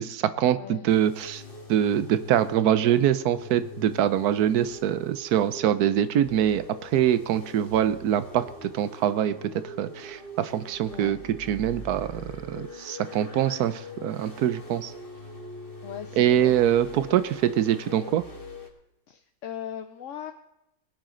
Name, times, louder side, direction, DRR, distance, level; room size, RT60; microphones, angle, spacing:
voice 1, 0.0-1.4 1.7-9.4 9.6-14.9 16.2-18.3, right 10 dB, 80° right, 13 dB, 1.2 m, -24 dB
voice 2, 0.5-0.9 10.9-11.2 15.8-16.6 19.1-20.3, left 10 dB, 60° left, 6 dB, 1.0 m, -38 dB
sound 1, 0.9-18.7, left 1 dB, 35° left, 1.9 m, -43 dB
20.0 x 10.5 x 3.8 m, 0.88 s
omnidirectional pair, 1.6 m